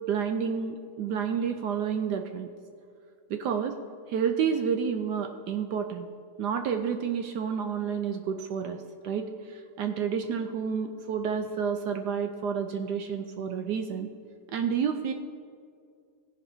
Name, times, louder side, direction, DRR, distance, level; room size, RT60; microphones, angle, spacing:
voice 1, 0.1-2.5 3.3-3.8 4.1-6.1 6.4-8.8 9.0-14.1 14.5-15.1, right 7 dB, 75° right, 6 dB, 1.0 m, -30 dB
16.5 x 10.5 x 2.7 m, 2.3 s
omnidirectional pair, 2.2 m